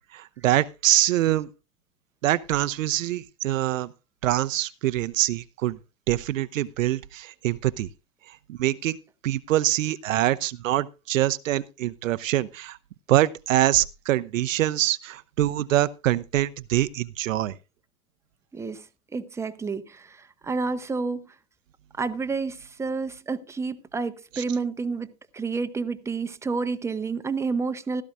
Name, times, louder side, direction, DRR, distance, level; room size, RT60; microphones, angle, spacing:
voice 1, 0.1-1.5 2.2-3.9 4.2-5.8 6.1-7.9 8.5-9.0 9.2-12.8 13.1-17.5, right 14 dB, 65° right, 0.7 m, -24 dB
voice 2, 18.5-18.9 19.1-21.3 22.0-28.0, right 4 dB, 5° right, 0.7 m, -30 dB
16.0 x 13.0 x 2.5 m
figure-of-eight pair, 95°, 43 cm